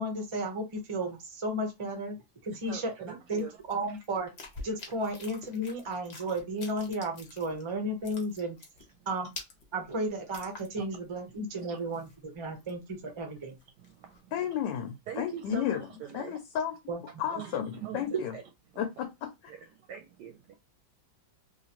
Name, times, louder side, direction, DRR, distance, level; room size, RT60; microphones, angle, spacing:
voice 1, 0.0-4.3 4.6-8.6 9.1-9.3 9.7-12.1 12.3-13.6 16.9-17.0, right 1 dB, 45° right, 0.4 m, -34 dB
voice 2, 2.6-3.5 10.8-10.9 11.5-11.8 13.8-14.3 15.1-16.4 17.3-18.4 19.5-20.6, right 9 dB, 75° right, 1.1 m, -43 dB
sound 1, 3.4-7.7 8.0-11.1 11.3-11.4 11.8-12.9 13.4-14.2, left 3 dB, 45° left, 0.8 m, -47 dB
voice 3, 14.3-15.8 16.1-16.8 17.2-17.7 17.9-18.3 18.8-19.5, left 9 dB, 75° left, 1.2 m, -32 dB
3.1 x 2.8 x 2.8 m
omnidirectional pair, 2.0 m